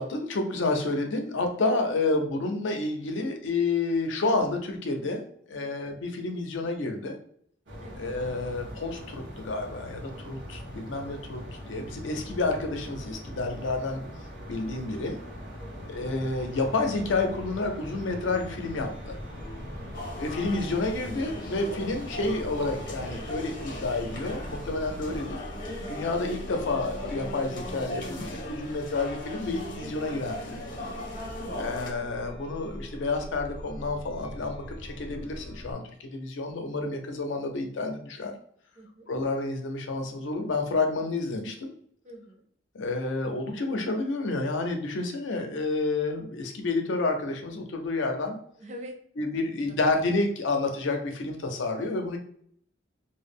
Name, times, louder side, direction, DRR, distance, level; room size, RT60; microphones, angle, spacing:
voice 1, 0.0-7.2 8.0-11.4 11.7-14.0 14.5-15.2 15.9-19.2 20.2-25.4 25.9-30.6 31.5-38.3 39.1-41.7 42.7-48.4 49.2-52.2, left 3 dB, 85° left, 4 dB, 0.5 m, -29 dB
sound 1, 7.7-25.2, equal, 70° right, 0.7 m, -41 dB
voice 2, 15.6-15.9 19.6-20.1 31.5-31.8 38.8-39.1 42.0-42.4 48.6-49.0 49.7-49.8, equal, 35° right, 3 dB, 0.4 m, -46 dB
Chime, 18.3-35.7, equal, 25° left, 0.4 m, -43 dB
sound 2, 19.9-31.9, left 1 dB, 50° left, 0.7 m, -39 dB
2.2 x 2.0 x 3.4 m, 0.64 s
head